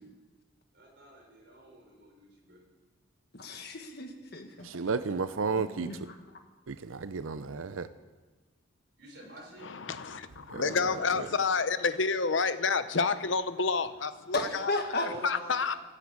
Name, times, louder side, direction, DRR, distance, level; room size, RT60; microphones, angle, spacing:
voice 1, 0.7-2.6 9.0-9.7 14.9-15.8, equal, 55° right, -1 dB, 4.8 m, -47 dB
voice 2, 3.3-4.7 5.5-6.2 10.7-11.2 14.3-15.1, left 2 dB, 50° left, 5 dB, 1.7 m, -35 dB
voice 3, 4.6-5.9 6.7-7.9 10.5-10.6, right 4 dB, 80° right, 12 dB, 0.6 m, -32 dB
voice 4, 9.6-14.7 15.0-15.7, left 4 dB, 65° left, 12 dB, 0.8 m, -29 dB
15.0 x 10.0 x 8.5 m, 1.3 s
head